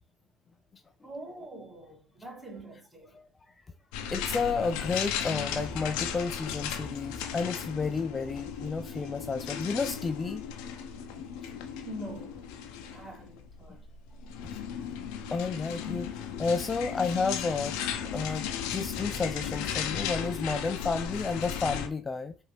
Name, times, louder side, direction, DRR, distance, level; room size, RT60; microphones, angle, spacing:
voice 1, 1.0-3.2 11.8-12.5 12.9-13.8, right 1 dB, 15° right, 2.2 m, -44 dB
voice 2, 3.1-3.5 4.1-10.4 14.4-14.6 15.3-17.8 18.1-22.4, left 4 dB, 25° left, 0.4 m, -31 dB
sound 1, 3.9-21.9, left 8 dB, 75° left, 0.6 m, -36 dB
4.9 x 2.7 x 3.2 m
hypercardioid pair, 70°, 0 cm